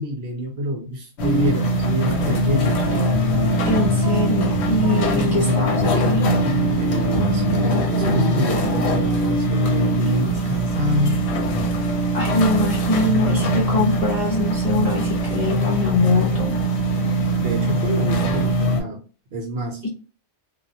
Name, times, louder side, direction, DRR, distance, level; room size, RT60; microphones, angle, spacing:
voice 1, 0.0-2.8 6.8-11.3 17.4-19.0 19.3-19.8, equal, 60° right, 2 dB, 0.8 m, -27 dB
sound 1, 1.2-18.8, right 1 dB, 70° left, 0.8 m, -21 dB
sound 2, 2.5-7.8, equal, 35° right, 0.4 m, -28 dB
voice 2, 3.6-6.3 12.1-16.6 19.8-19.9, left 2 dB, 45° left, -4 dB, 0.6 m, -23 dB
2.3 x 2.0 x 2.6 m, 0.36 s
omnidirectional pair, 1.2 m